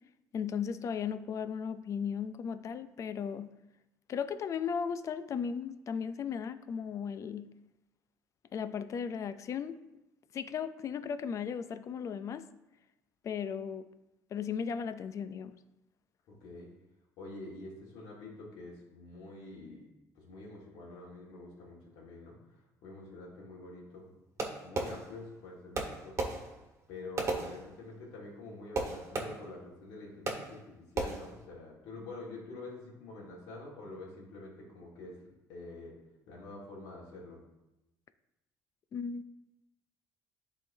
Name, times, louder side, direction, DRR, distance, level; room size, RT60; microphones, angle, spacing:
voice 1, 0.3-3.5 4.1-7.5 8.5-9.8 10.3-12.5 13.2-13.9 14.3-15.5 38.9-39.3, left 7 dB, 45° left, 0.4 m, -36 dB
voice 2, 16.3-16.7 17.2-19.8 20.1-22.4 22.8-24.1 24.6-26.3 26.9-35.2 35.5-35.9 36.3-37.4, left 2 dB, 85° left, 1.7 m, -46 dB
Fireworks, 24.4-25.4 25.7-28.1 28.7-29.7 30.3-30.7 31.0-31.5, right 3 dB, 45° right, 1.3 m, -37 dB
10.5 x 3.8 x 2.7 m
cardioid pair, 95°, 7 cm